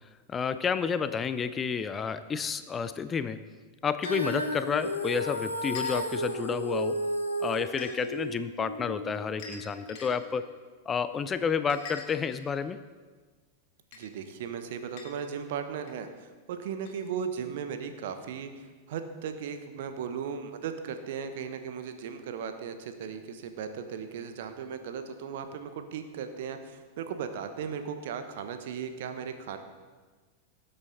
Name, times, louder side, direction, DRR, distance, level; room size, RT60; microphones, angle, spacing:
voice 1, 0.3-3.4 3.8-7.1 7.4-10.5 10.9-12.8, left 6 dB, 20° left, 12 dB, 0.5 m, -30 dB
Female singing, 4.0-10.2, equal, 85° left, 1.2 m, -33 dB
sound 1, 4.0-4.2 5.8-6.1 7.7-7.9 9.4-10.1 11.7-12.6 13.9-14.0 15.0-15.1 15.9-16.0 16.9-17.0, left 4 dB, 45° left, 2.4 m, -43 dB
voice 2, 13.9-29.6, right 7 dB, 55° right, 8 dB, 1.1 m, -37 dB
19.0 x 7.9 x 4.0 m, 1.4 s
figure-of-eight pair, 90°, 0 cm